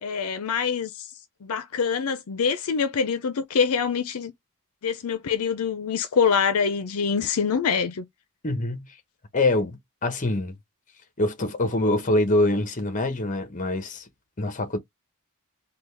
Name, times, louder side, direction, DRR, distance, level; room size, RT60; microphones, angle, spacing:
voice 1, 0.0-1.1 1.4-4.3 4.8-8.0, left 6 dB, 75° left, 0.5 m, -25 dB
voice 2, 8.4-8.9 9.3-10.5 11.2-14.1 14.4-14.8, left 2 dB, 35° left, 0.9 m, -24 dB
3.8 x 2.3 x 3.2 m
head